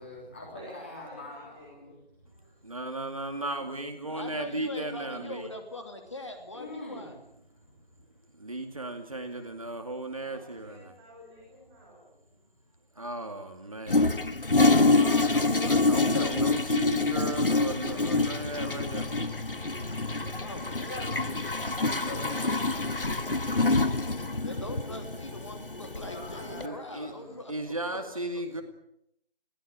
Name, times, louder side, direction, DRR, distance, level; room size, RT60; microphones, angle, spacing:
voice 1, 0.0-1.9 2.4-2.5 6.5-7.1 22.0-22.3 22.6-23.3 26.0-27.4, left 1 dB, 10° left, -1 dB, 3.4 m, -44 dB
voice 2, 0.5-2.0 10.2-12.4 18.1-19.0 23.9-24.6, right 1 dB, 5° right, -7 dB, 2.9 m, -52 dB
voice 3, 2.6-5.5 8.4-10.9 13.0-14.2 15.9-19.1 26.5-27.1 27.5-28.6, right 2 dB, 35° right, 5 dB, 2.2 m, -35 dB
voice 4, 4.1-7.2 14.9-16.5 17.8-18.4 20.4-22.8 23.8-24.0 24.4-27.5 27.9-28.0, left 1 dB, 30° left, 5 dB, 2.9 m, -41 dB
Toilet flush, 13.9-26.7, left 3 dB, 60° left, 1.7 m, -26 dB
21.5 x 17.5 x 9.7 m, 0.76 s
figure-of-eight pair, 175°, 30 cm